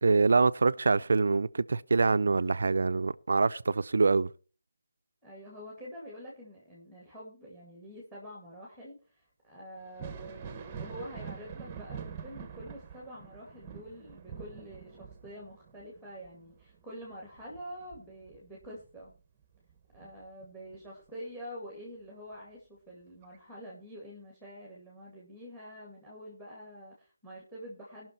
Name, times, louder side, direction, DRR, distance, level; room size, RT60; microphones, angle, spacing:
voice 1, 0.0-4.3, right 4 dB, 65° right, 0.5 m, -25 dB
voice 2, 5.2-19.1 19.9-28.1, equal, ahead, 2.2 m, -46 dB
Thunder, 9.8-19.2 19.5-20.8 22.3-22.4 23.2-23.4, right 6 dB, 20° right, 1.1 m, -45 dB
17.5 x 6.1 x 4.4 m
figure-of-eight pair, 165°, 0 cm